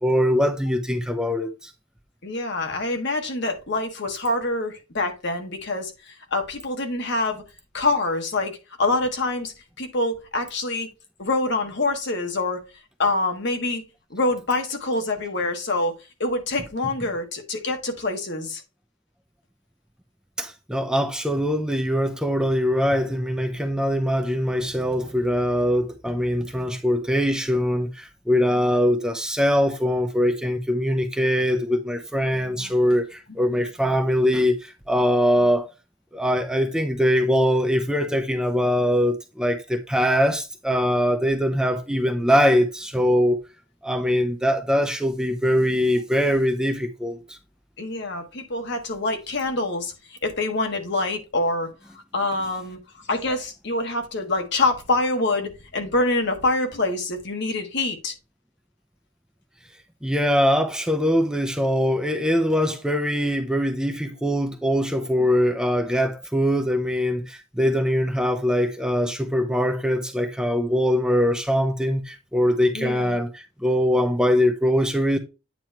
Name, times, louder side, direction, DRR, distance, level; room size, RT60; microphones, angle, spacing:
voice 1, 0.0-1.7 20.4-35.7 36.1-43.4 43.8-47.4 60.0-75.2, equal, 5° right, 0.6 m, -22 dB
voice 2, 2.2-7.4 7.7-8.5 8.8-10.9 11.2-12.6 13.0-13.8 14.1-15.9 16.2-18.6 28.5-28.6 32.3-32.7 33.5-33.6 47.8-49.9 50.2-51.7 52.1-52.8 53.1-58.1 72.7-73.2, left 2 dB, 60° left, 1.5 m, -25 dB
9.0 x 3.1 x 4.3 m
head